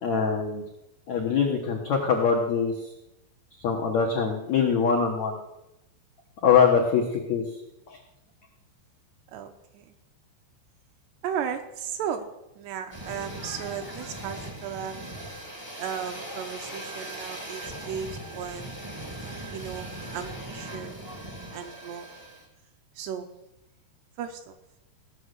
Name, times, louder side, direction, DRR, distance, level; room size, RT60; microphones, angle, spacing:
voice 1, 0.0-0.6 1.1-2.9 3.6-5.4 6.4-7.4 7.9-8.0, left 6 dB, 80° left, 0 dB, 1.6 m, -23 dB
voice 2, 9.3-9.9 11.2-12.3 12.6-15.0 15.8-18.7 19.5-21.0 21.5-22.1 23.0-23.3 24.2-24.5, right 8 dB, 75° right, 6 dB, 2.7 m, -35 dB
sound 1, 12.9-22.5, right 1 dB, 25° right, 0.6 m, -39 dB
17.0 x 6.5 x 8.1 m, 0.90 s
omnidirectional pair, 5.4 m